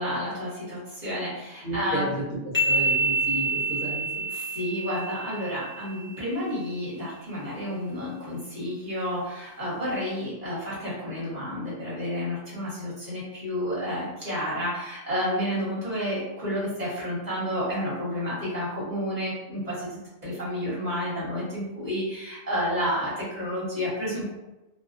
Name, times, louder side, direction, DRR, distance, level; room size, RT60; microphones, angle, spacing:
voice 1, 0.0-2.2 4.3-24.3, equal, 40° right, -8 dB, 0.8 m, -30 dB
voice 2, 1.6-2.4 2.7-4.0, equal, 75° left, -5 dB, 1.1 m, -32 dB
sound 1, 2.5-6.1, right 2 dB, 15° left, 0.4 m, -27 dB
2.3 x 2.3 x 2.3 m, 1.0 s
omnidirectional pair, 1.4 m